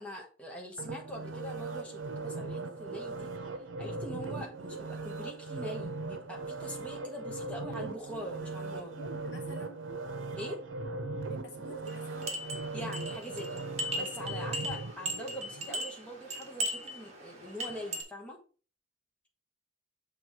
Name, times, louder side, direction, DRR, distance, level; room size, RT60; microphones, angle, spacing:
voice 1, 0.0-3.3 3.8-9.0 10.4-10.6 12.7-13.7 13.9-18.4, equal, 5° left, -2 dB, 1.3 m, -43 dB
sound 1, 0.8-15.8 16.3-16.4, right 3 dB, 80° right, 0.8 m, -39 dB
voice 2, 8.9-9.8 11.3-12.3, equal, 60° left, 2 dB, 1.5 m, -48 dB
sound 2, 11.9-18.0, equal, 35° right, 1.7 m, -38 dB
7.0 x 3.5 x 4.8 m, 0.37 s
head